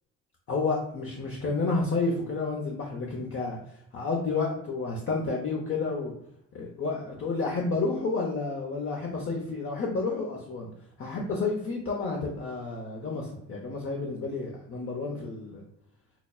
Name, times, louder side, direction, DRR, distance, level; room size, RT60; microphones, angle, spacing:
voice 1, 0.5-6.1 6.5-10.7 11.0-15.6, left 3 dB, 45° left, -1 dB, 0.8 m, -30 dB
5.8 x 2.2 x 2.3 m, 0.72 s
cardioid pair, 90°, 30 cm